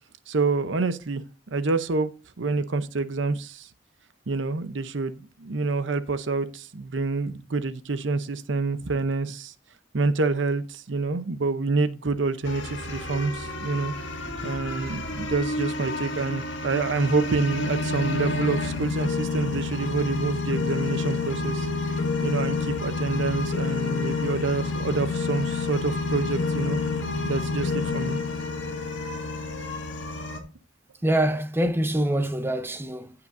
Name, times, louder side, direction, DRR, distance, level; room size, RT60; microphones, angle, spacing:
voice 1, 0.3-1.2 1.5-2.1 2.4-3.7 4.3-9.5 9.9-13.9 14.4-26.8 27.2-28.2, right 3 dB, 75° right, 0.7 m, -27 dB
sound 1, 12.4-30.4, left 3 dB, 70° left, 1.8 m, -29 dB
voice 2, 31.0-33.1, right 1 dB, 10° right, 0.7 m, -25 dB
16.0 x 5.8 x 2.6 m
head